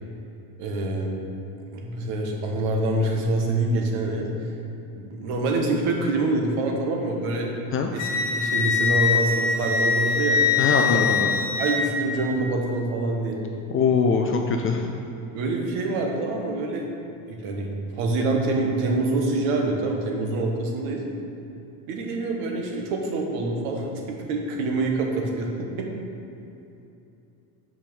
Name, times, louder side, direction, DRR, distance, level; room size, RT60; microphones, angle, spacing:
voice 1, 0.6-1.1 1.7-4.3 4.9-7.5 7.9-10.4 10.8-11.0 11.6-13.4 15.3-16.9 17.3-17.7 17.9-21.0 21.9-25.9, right 2 dB, 75° right, 1 dB, 1.5 m, -26 dB
Wind instrument woodwind instrument, 8.0-11.8, left 5 dB, 65° left, 1.3 m, -23 dB
voice 2, 10.6-11.3 13.7-14.9, left 5 dB, 30° left, 3 dB, 0.3 m, -22 dB
6.1 x 4.9 x 6.1 m, 2.8 s
supercardioid pair, 120°, 50 cm